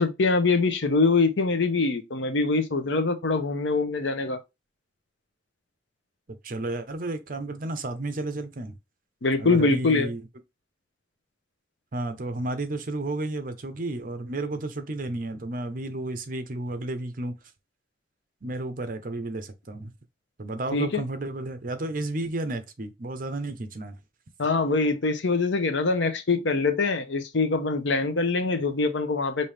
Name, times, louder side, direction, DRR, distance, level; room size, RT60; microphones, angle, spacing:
voice 1, 0.0-4.4 9.2-10.1 20.7-21.0 24.4-29.5, left 3 dB, 75° left, 0.8 m, -24 dB
voice 2, 6.4-8.7 9.4-10.3 11.9-17.3 18.4-19.9 20.4-24.0, right 2 dB, 45° right, 0.7 m, -32 dB
5.2 x 2.7 x 3.3 m
head